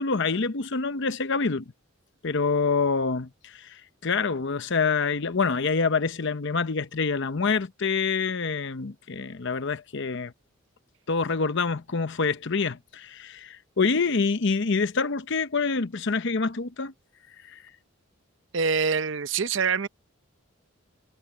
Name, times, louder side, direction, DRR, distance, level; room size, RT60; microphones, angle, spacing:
voice 1, 0.0-1.6 2.2-10.3 11.1-16.9 17.5-17.6, left 4 dB, 55° left, 0.8 m, -26 dB
voice 2, 18.5-19.9, right 5 dB, 60° right, 0.7 m, -25 dB
head